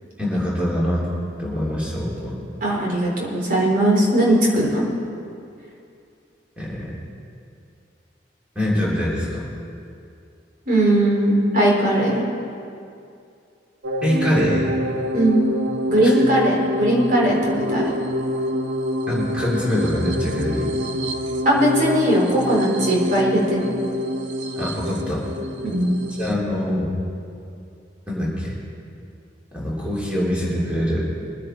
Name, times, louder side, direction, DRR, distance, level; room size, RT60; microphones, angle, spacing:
voice 1, 0.2-1.1 1.4-2.4 6.6-6.9 8.5-9.4 14.0-14.7 19.1-20.7 24.6-25.2 26.2-26.9 28.1-28.6 29.5-31.0, equal, 5° right, -7 dB, 3.3 m, -24 dB
voice 2, 2.6-4.9 10.7-12.2 15.1-15.4 15.9-17.8 21.4-23.6 25.6-26.0, right 1 dB, 45° right, -3 dB, 3.8 m, -19 dB
sound 1, 13.8-26.3, equal, 85° right, 1.0 m, -26 dB
23.0 x 9.8 x 4.5 m, 2.5 s
head